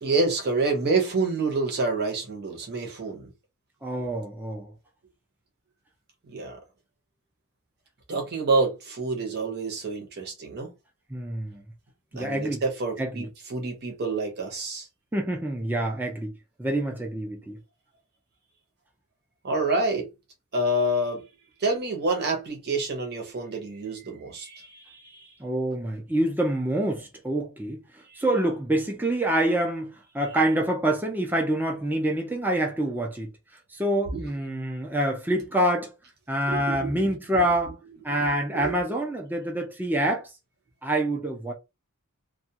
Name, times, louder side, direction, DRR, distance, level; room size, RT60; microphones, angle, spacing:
voice 1, 0.0-3.3 4.0-4.1 6.3-6.6 8.1-10.7 12.1-14.9 19.4-20.1 20.5-21.3 21.6-25.3 28.1-28.2 34.1-34.2 36.5-37.0 37.3-37.5 38.5-39.0, right 2 dB, 50° right, 0.9 m, -28 dB
voice 2, 3.8-4.7 11.1-11.6 12.1-12.6 13.0-13.3 15.1-16.3 16.6-17.6 25.4-27.8 28.2-33.3 33.7-35.9 36.3-37.8 38.0-40.3 40.8-41.5, right 1 dB, 10° right, 0.6 m, -26 dB
2.3 x 2.3 x 2.7 m
head